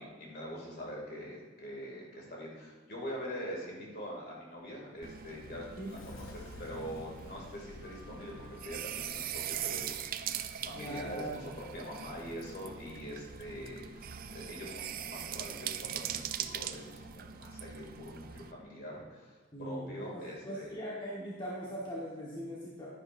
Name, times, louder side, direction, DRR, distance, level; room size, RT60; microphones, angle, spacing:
voice 1, 0.0-20.8, equal, 50° left, -2 dB, 2.6 m, -44 dB
Sliding door, 4.6-9.4, left 4 dB, 70° left, 0.4 m, -53 dB
sound 1, 5.0-18.5, right 9 dB, 45° right, 0.4 m, -41 dB
voice 2, 5.8-6.1 10.7-11.5 19.5-22.9, equal, 25° left, -6 dB, 1.3 m, -41 dB
11.0 x 10.5 x 2.6 m, 1.4 s
head